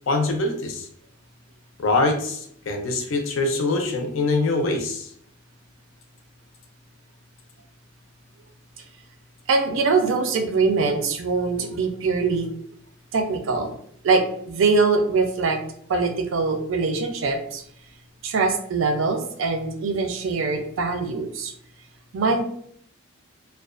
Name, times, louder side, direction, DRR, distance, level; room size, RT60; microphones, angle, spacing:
voice 1, 0.1-0.9 1.8-5.1, left 2 dB, 70° left, 4 dB, 0.5 m, -24 dB
voice 2, 9.5-12.5 13.1-13.8 14.0-15.6 15.9-17.6 18.2-21.5 22.1-22.4, right 4 dB, 75° right, 6 dB, 0.4 m, -23 dB
2.4 x 2.2 x 2.3 m, 0.65 s
head